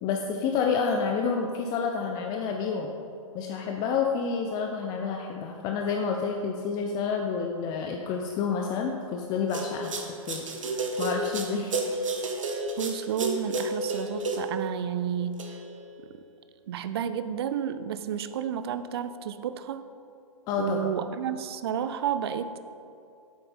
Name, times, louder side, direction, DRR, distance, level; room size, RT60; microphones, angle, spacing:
voice 1, 0.0-2.9 3.3-11.8 20.5-20.9, left 5 dB, 25° left, 2 dB, 0.4 m, -29 dB
sound 1, 9.5-14.6 15.4-15.9, right 2 dB, 65° right, 1.0 m, -31 dB
voice 2, 12.8-15.4 16.7-19.8 20.6-22.6, right 9 dB, 50° right, 11 dB, 0.4 m, -31 dB
7.9 x 6.5 x 4.3 m, 2.5 s
figure-of-eight pair, 110°, 18 cm